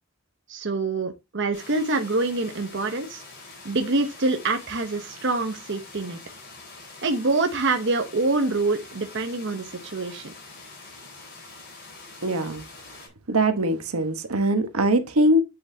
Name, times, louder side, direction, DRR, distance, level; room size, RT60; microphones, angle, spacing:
voice 1, 0.5-3.2 3.6-6.2 7.0-10.3, right 3 dB, 55° right, 0.9 m, -25 dB
sound 1, 1.5-13.1, left 3 dB, 50° left, 4.3 m, -45 dB
voice 2, 12.2-12.6 13.3-15.4, right 1 dB, 85° right, 1.2 m, -22 dB
7.9 x 6.6 x 2.8 m
head